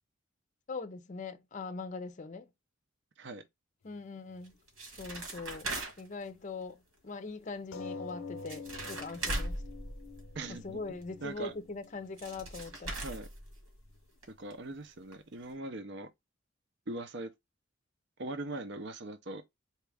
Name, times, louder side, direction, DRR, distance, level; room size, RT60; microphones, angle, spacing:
voice 1, 0.7-2.5 3.8-4.5 5.0-9.6 10.5-13.0, left 4 dB, 40° left, 0.5 m, -42 dB
sound 1, 3.9-4.0 4.3-4.4 7.7-12.8 13.1-13.2 13.4-13.5 13.9-14.0 14.3-14.4, left 4 dB, 90° left, 0.5 m, -47 dB
sound 2, 4.4-6.2 8.1-8.2 8.4-10.6 11.8-11.9 12.2-13.9 14.2-14.3 14.5-14.6 15.1-15.2 15.5-15.6, right 2 dB, 85° right, 1.8 m, -39 dB
voice 2, 10.3-11.5 13.0-13.3 14.3-16.1 16.9-17.3 18.2-19.4, right 2 dB, 60° right, 0.6 m, -41 dB
4.3 x 2.4 x 3.4 m
head